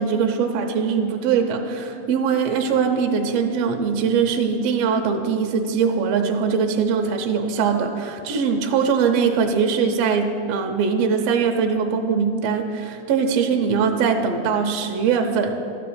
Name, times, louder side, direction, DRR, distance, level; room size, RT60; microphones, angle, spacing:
voice 1, 0.0-15.5, right 6 dB, 75° right, 4 dB, 1.5 m, -21 dB
12.5 x 4.8 x 8.5 m, 2.5 s
omnidirectional pair, 3.6 m